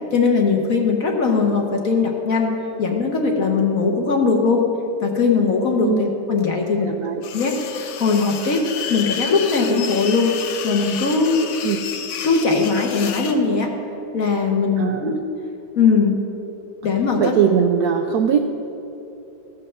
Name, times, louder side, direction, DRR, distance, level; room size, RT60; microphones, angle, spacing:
voice 1, 0.1-2.5 2.8-4.6 5.0-6.9 7.3-8.6 8.9-10.3 10.6-11.4 12.2-13.7 14.1-15.1 15.8-16.2 16.8-17.3, left 4 dB, 55° left, 2 dB, 1.2 m, -19 dB
voice 2, 6.7-7.2 11.6-11.8 14.8-15.1 17.2-18.4, right 7 dB, 75° right, 5 dB, 0.9 m, -20 dB
sound 1, 7.2-13.4, left 7 dB, 70° left, 1.3 m, -31 dB
15.0 x 5.5 x 6.7 m, 3.0 s
omnidirectional pair, 2.2 m